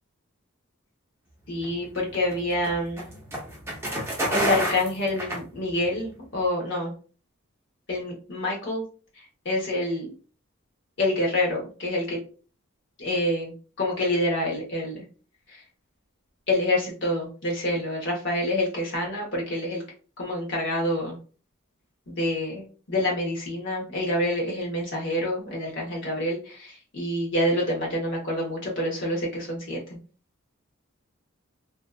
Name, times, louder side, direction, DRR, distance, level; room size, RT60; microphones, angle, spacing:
voice 1, 1.5-3.0 4.3-6.9 7.9-8.8 9.4-10.1 11.0-12.2 13.0-15.0 16.5-19.8 20.2-21.2 22.1-29.8, left 1 dB, 55° left, -2 dB, 0.9 m, -27 dB
sound 1, 1.6-6.0, right 1 dB, 10° right, 0.6 m, -30 dB
2.7 x 2.4 x 2.2 m, 0.37 s
head